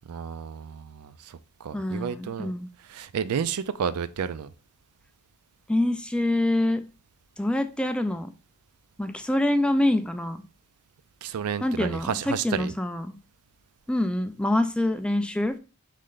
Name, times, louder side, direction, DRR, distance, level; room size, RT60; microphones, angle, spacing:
voice 1, 0.1-2.5 2.9-4.5 11.2-12.7, right 7 dB, 85° right, 0.4 m, -31 dB
voice 2, 1.7-2.7 5.7-6.8 7.4-8.3 9.0-10.4 11.6-13.2 13.9-15.6, left 1 dB, 5° left, 0.3 m, -25 dB
4.2 x 3.2 x 3.8 m
head